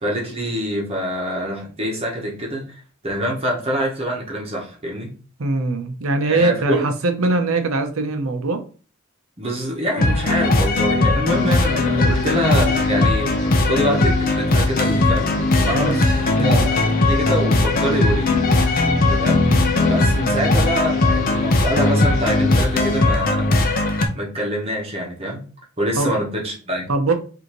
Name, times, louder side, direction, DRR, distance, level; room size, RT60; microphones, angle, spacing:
voice 1, 0.0-2.6 3.0-5.1 6.3-6.9 9.4-18.3 19.1-19.5 19.8-23.7 24.1-25.4 25.8-26.9, equal, 30° right, 1.1 m, -25 dB
voice 2, 5.4-8.6 15.7-16.0 16.4-16.7 25.9-26.1 26.9-27.1, right 2 dB, 75° right, 0.7 m, -21 dB
sound 1, 10.0-24.1, left 2 dB, 45° left, 0.6 m, -19 dB
sound 2, 11.3-23.0, left 6 dB, 70° left, 0.9 m, -28 dB
5.1 x 2.7 x 3.0 m
head